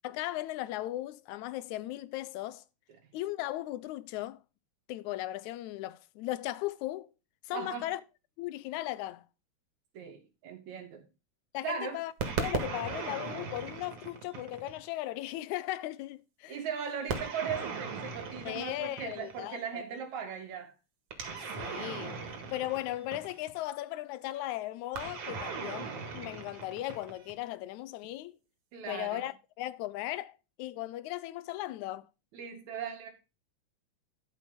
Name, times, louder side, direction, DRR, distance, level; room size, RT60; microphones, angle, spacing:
voice 1, 0.0-2.6 3.1-4.4 4.9-7.1 7.5-8.0 8.4-9.3 11.5-12.1 12.4-16.6 18.5-19.8 21.6-22.2 22.5-28.4 28.9-32.1, left 15 dB, 85° left, 2.0 m, -37 dB
voice 2, 7.5-7.9 9.9-11.0 11.6-12.0 16.5-20.7 28.7-29.3 32.3-33.1, right 7 dB, 75° right, 3.0 m, -38 dB
sound 1, 12.2-14.9 17.1-19.5 21.1-23.6 24.9-27.4, right 5 dB, 55° right, 2.7 m, -38 dB
12.0 x 5.3 x 5.2 m
omnidirectional pair, 3.3 m